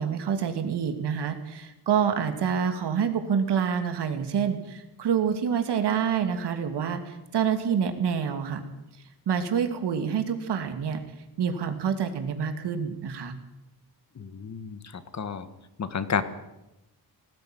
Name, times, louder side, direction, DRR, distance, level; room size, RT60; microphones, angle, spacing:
voice 1, 0.0-8.6 9.3-11.0 11.4-13.4, right 7 dB, 90° right, 7 dB, 2.7 m, -27 dB
voice 2, 14.2-15.5 15.8-16.2, left 6 dB, 45° left, 12 dB, 1.5 m, -31 dB
18.5 x 16.0 x 9.3 m, 0.92 s
wide cardioid pair, 160°, 40 cm